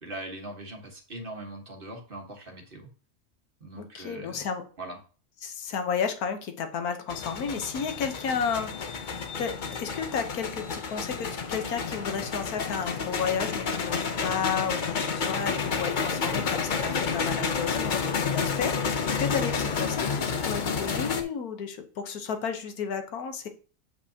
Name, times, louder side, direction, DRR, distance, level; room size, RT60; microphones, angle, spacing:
voice 1, 0.0-2.9 3.6-4.5 4.8-5.0, right 1 dB, 40° right, 2 dB, 1.4 m, -41 dB
voice 2, 3.7-4.6 5.4-9.5 9.8-23.5, left 6 dB, 90° left, 7 dB, 1.4 m, -32 dB
sound 1, 7.1-21.2, left 5 dB, 45° left, 0.7 m, -30 dB
7.5 x 7.3 x 2.8 m, 0.39 s
omnidirectional pair, 1.5 m